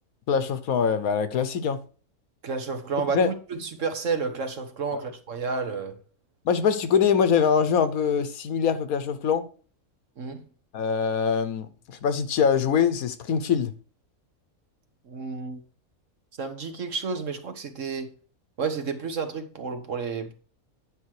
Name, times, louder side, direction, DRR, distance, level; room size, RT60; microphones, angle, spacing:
voice 1, 0.3-1.8 3.1-3.3 4.9-5.0 6.4-9.5 10.7-13.7, left 7 dB, 70° left, 1.3 m, -23 dB
voice 2, 2.4-6.0 10.2-10.5 15.0-15.6 16.4-18.1 18.6-20.3, right 5 dB, 55° right, 1.6 m, -31 dB
9.9 x 5.8 x 4.6 m
omnidirectional pair, 1.6 m